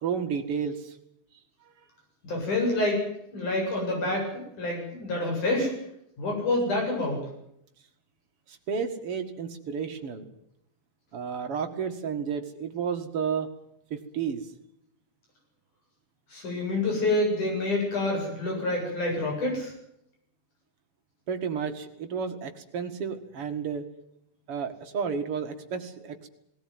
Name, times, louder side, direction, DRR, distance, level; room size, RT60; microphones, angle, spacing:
voice 1, 0.0-0.9 8.7-10.3 11.1-13.5 13.9-14.4 21.3-23.8 24.5-26.2, right 6 dB, 50° right, 6 dB, 2.6 m, -31 dB
voice 2, 2.2-3.0 3.3-5.7 6.2-7.3 16.3-19.7, left 2 dB, 75° left, 0 dB, 9.6 m, -27 dB
19.0 x 17.5 x 9.6 m, 0.76 s
omnidirectional pair, 3.5 m